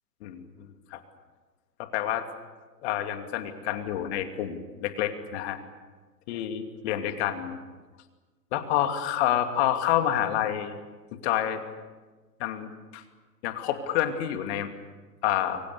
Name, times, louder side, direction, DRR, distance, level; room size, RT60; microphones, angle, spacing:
voice 1, 1.9-2.2 2.8-5.6 6.3-7.6 8.5-10.7 11.1-11.6 12.4-13.0 13.4-14.7 15.2-15.6, left 11 dB, 40° left, 6 dB, 2.7 m, -28 dB
29.5 x 24.0 x 6.9 m, 1.3 s
figure-of-eight pair, 115°, 49 cm